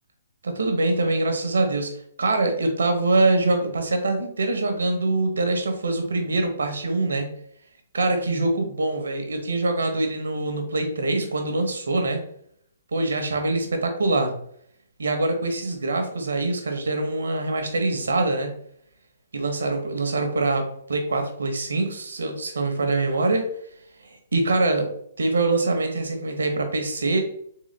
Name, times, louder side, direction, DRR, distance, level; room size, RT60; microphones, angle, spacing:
voice 1, 0.4-7.3 7.9-12.2 12.9-14.3 15.0-18.5 19.3-23.5 24.0-24.9 25.2-27.2, right 2 dB, 80° right, 5 dB, 1.0 m, -24 dB
3.9 x 3.5 x 3.3 m, 0.66 s
hypercardioid pair, 135°, 0 cm